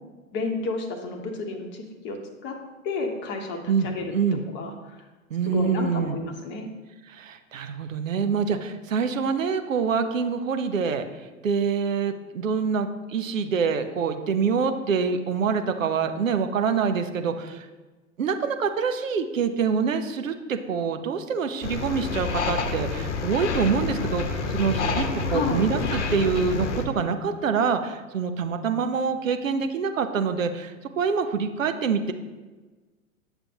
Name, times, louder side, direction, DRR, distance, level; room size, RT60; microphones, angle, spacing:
voice 1, 0.3-2.6 2.8-4.1 4.5-5.0 5.5-6.7 25.3-25.6, left 4 dB, 25° left, 4 dB, 1.0 m, -31 dB
voice 2, 3.7-4.4 5.3-6.2 7.1-11.0 11.4-17.7 18.2-32.1, right 6 dB, 65° right, 8 dB, 0.8 m, -26 dB
sound 1, 21.6-26.8, left 4 dB, 55° left, 1.0 m, -28 dB
9.0 x 6.8 x 2.8 m, 1.3 s
figure-of-eight pair, 100°, 42 cm